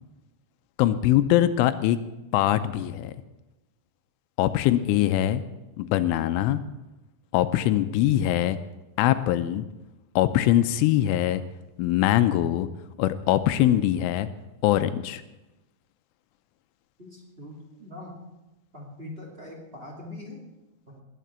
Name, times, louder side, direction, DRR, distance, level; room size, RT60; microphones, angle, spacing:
voice 1, 0.8-2.0 2.3-3.1 4.4-5.4 5.8-6.6 7.3-8.6 9.0-9.6 10.2-11.4 11.8-12.7 13.0-14.3 14.6-15.2, left 13 dB, 85° left, 11 dB, 3.2 m, -22 dB
voice 2, 17.0-18.1 18.7-20.4 20.9-21.0, left 2 dB, 20° right, -2 dB, 1.5 m, -42 dB
20.0 x 7.6 x 8.1 m, 1.0 s
omnidirectional pair, 5.6 m